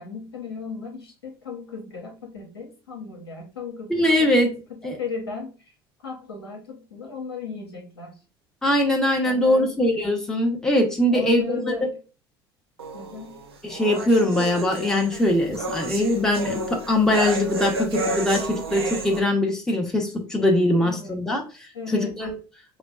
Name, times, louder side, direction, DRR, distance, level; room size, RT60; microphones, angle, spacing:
voice 1, 0.0-5.7 6.0-8.2 9.2-9.9 11.1-12.0 12.9-13.4 20.8-21.3 21.7-22.1, left 5 dB, 85° left, -1 dB, 1.0 m, -36 dB
voice 2, 3.9-4.5 4.8-5.0 8.6-11.6 13.6-21.4 21.9-22.3, left 1 dB, 5° left, 0 dB, 0.9 m, -21 dB
sound 1, 12.8-19.2, right 2 dB, 90° right, 0.6 m, -31 dB
5.0 x 2.2 x 2.3 m, 0.34 s
hypercardioid pair, 70°, 13 cm